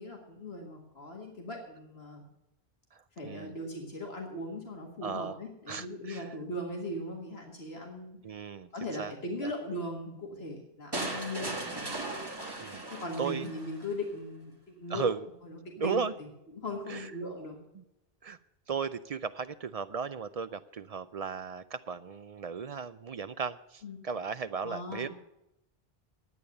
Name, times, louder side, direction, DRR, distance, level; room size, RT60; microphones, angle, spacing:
voice 1, 0.0-2.2 3.2-8.2 8.7-11.9 12.9-15.1 15.4-16.3 16.6-17.6 23.8-24.0 24.6-25.1, left 1 dB, 80° left, 1 dB, 2.1 m, -39 dB
voice 2, 2.9-3.6 5.0-5.4 5.7-6.3 8.2-9.1 9.4-9.5 12.6-12.8 13.2-13.5 14.9-15.3 15.8-16.1 16.9-17.1 17.8-17.9 18.2-18.4 18.7-25.1, right 5 dB, 55° right, 13 dB, 0.4 m, -36 dB
sound 1, 10.9-13.9, right 2 dB, 25° right, 1.7 m, -37 dB
11.0 x 8.5 x 6.5 m, 0.87 s
omnidirectional pair, 1.0 m